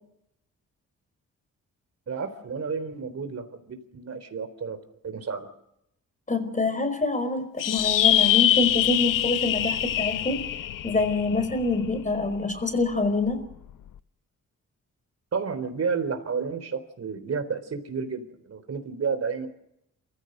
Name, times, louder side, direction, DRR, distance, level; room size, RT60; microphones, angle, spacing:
voice 1, 2.1-4.8 5.0-5.5 15.3-19.5, right 5 dB, 50° right, 9 dB, 3.9 m, -31 dB
voice 2, 6.3-10.4 10.8-13.4, left 3 dB, 25° left, 10 dB, 4.8 m, -26 dB
sound 1, 7.6-12.3, left 11 dB, 80° left, 0.8 m, -24 dB
28.5 x 15.5 x 6.7 m, 0.79 s
cardioid pair, 110°, 32 cm